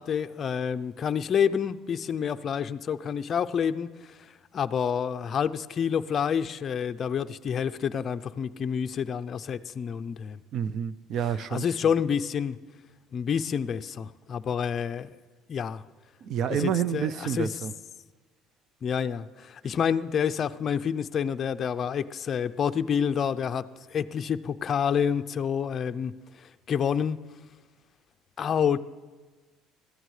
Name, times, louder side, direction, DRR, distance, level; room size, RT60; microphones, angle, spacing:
voice 1, 0.0-4.1 4.5-10.4 11.5-12.6 13.1-15.1 15.5-15.8 16.9-17.1 17.4-17.5 18.8-23.6 23.9-26.1 26.4-27.2 28.4-28.8, left 7 dB, 40° left, 0.4 m, -28 dB
voice 2, 10.5-11.6 16.2-17.7, right 8 dB, 55° right, 0.5 m, -29 dB
21.5 x 14.0 x 3.2 m
cardioid pair, 120°, 0 cm